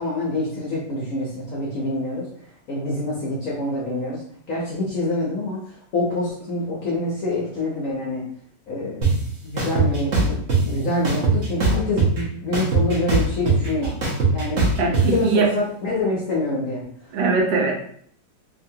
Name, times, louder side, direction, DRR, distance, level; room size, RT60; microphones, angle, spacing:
voice 1, 0.0-4.2 4.5-8.2 8.7-14.0 14.3-14.7 15.1-17.1, left 2 dB, 65° left, -5 dB, 0.8 m, -26 dB
sound 1, 9.0-9.1 9.6-10.6 11.0-12.2 12.5-15.0, right 4 dB, 50° right, 0.9 m, -20 dB
voice 2, 14.8-15.5 17.1-17.7, right 4 dB, 75° right, 0 dB, 1.4 m, -20 dB
2.9 x 2.7 x 2.7 m, 0.62 s
omnidirectional pair, 2.1 m